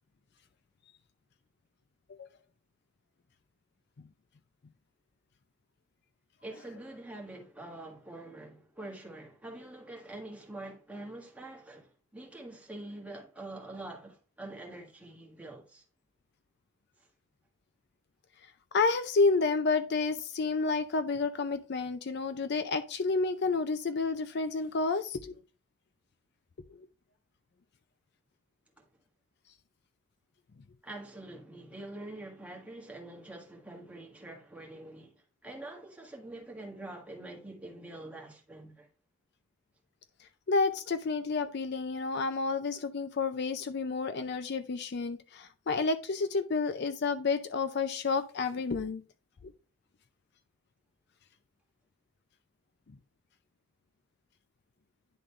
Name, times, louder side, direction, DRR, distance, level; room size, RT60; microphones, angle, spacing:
voice 1, 6.4-15.8 28.8-28.9 30.8-38.9, right 2 dB, 5° right, 1.5 m, -45 dB
voice 2, 18.7-25.4 26.8-26.9 40.5-49.0 49.4-49.5, left 4 dB, 55° left, 0.5 m, -30 dB
10.0 x 3.8 x 3.2 m
head